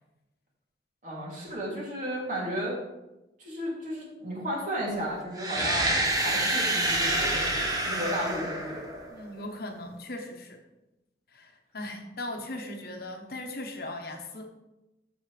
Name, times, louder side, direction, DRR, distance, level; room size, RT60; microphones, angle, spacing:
voice 1, 1.0-2.8 3.4-8.9, equal, 45° right, -4 dB, 2.8 m, -34 dB
sound 1, 5.3-9.3, right 1 dB, 20° right, 1.2 m, -27 dB
voice 2, 9.1-10.6 11.3-14.5, left 1 dB, 60° left, 4 dB, 1.1 m, -38 dB
13.5 x 6.1 x 3.3 m, 0.99 s
head